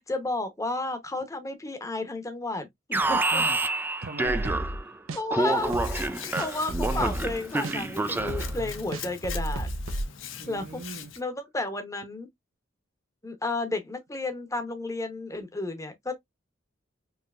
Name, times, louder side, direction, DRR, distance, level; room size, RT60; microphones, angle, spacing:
voice 1, 0.1-3.4 5.1-5.7 6.4-9.7 10.5-10.8 11.2-12.3 13.2-16.1, left 2 dB, 15° left, 0.8 m, -32 dB
Alarm, 2.9-4.9 5.3-8.6, right 2 dB, 10° right, 0.3 m, -28 dB
voice 2, 4.0-5.2 10.4-11.1, right 3 dB, 55° right, 0.8 m, -39 dB
sound 1, 4.2-4.8 5.1-5.2 5.6-6.1 6.4-7.3 7.6-7.7 8.1-10.0, right 1 dB, 80° right, 0.7 m, -32 dB
Hands, 5.4-11.2, left 7 dB, 70° left, 0.7 m, -42 dB
4.7 x 2.8 x 2.3 m
head